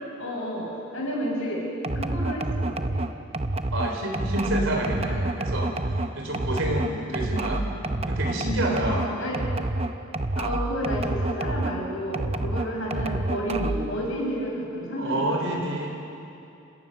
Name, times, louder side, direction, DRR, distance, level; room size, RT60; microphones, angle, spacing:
voice 1, 0.2-1.6 1.9-3.0 8.8-9.4 10.4-15.4, equal, 65° left, -3 dB, 6.9 m, -31 dB
sound 1, 1.8-11.8 12.1-13.9, right 2 dB, 30° right, 0.7 m, -28 dB
voice 2, 3.7-7.7 8.1-9.1 15.0-15.9, right 1 dB, 60° right, 2 dB, 4.2 m, -28 dB
29.0 x 17.5 x 6.9 m, 2.7 s
head